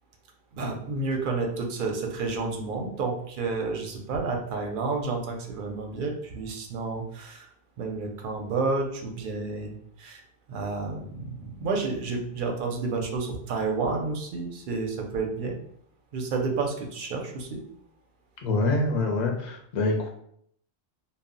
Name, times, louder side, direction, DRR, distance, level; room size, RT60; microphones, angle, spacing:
voice 1, 0.5-7.5 7.8-10.2 10.5-15.6 16.1-17.6, right 3 dB, 60° right, 2 dB, 0.6 m, -30 dB
voice 2, 18.4-20.1, left 2 dB, 55° left, 1 dB, 0.5 m, -25 dB
2.1 x 2.0 x 3.7 m, 0.69 s
omnidirectional pair, 1.1 m